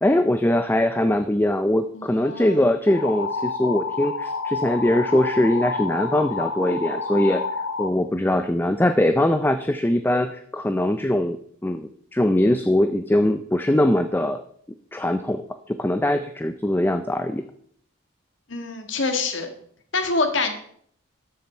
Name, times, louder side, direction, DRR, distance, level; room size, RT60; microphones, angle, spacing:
voice 1, 0.0-7.4 7.8-11.4 11.6-14.4 14.9-15.4 15.7-17.4, left 1 dB, 10° left, 9 dB, 0.4 m, -21 dB
voice 2, 1.9-2.6 18.5-19.5 19.9-20.5, left 3 dB, 65° left, 6 dB, 1.7 m, -26 dB
sound 1, 2.9-7.9, left 4 dB, 80° left, 1.1 m, -29 dB
13.0 x 7.3 x 4.4 m, 0.63 s
head